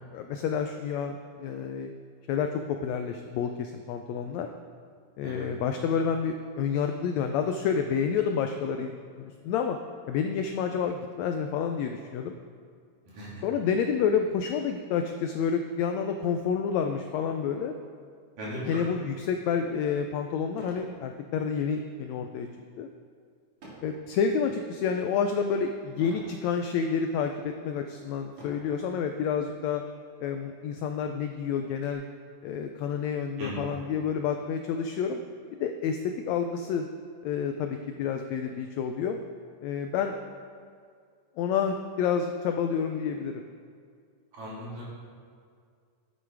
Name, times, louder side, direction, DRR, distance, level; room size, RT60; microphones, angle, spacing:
voice 1, 0.1-1.9 2.3-4.5 5.2-8.9 9.2-9.8 10.1-12.3 13.4-17.8 18.7-22.5 22.8-22.9 23.8-29.8 30.2-32.0 32.4-35.2 35.6-36.9 37.2-39.2 39.6-40.2 41.4-43.4, left 6 dB, 85° left, 5 dB, 1.5 m, -29 dB
voice 2, 18.4-18.8 33.4-33.7 44.3-44.8, equal, 80° right, -7 dB, 4.6 m, -37 dB
sound 1, 20.6-20.9 21.4-21.7 23.6-24.0 24.6-25.0 26.0-26.4 27.1-27.2 28.3-28.8 29.8-29.9 30.3-30.4 30.8-31.9, right 1 dB, 55° right, 3.2 m, -48 dB
11.0 x 8.0 x 4.7 m, 2.1 s
omnidirectional pair, 3.7 m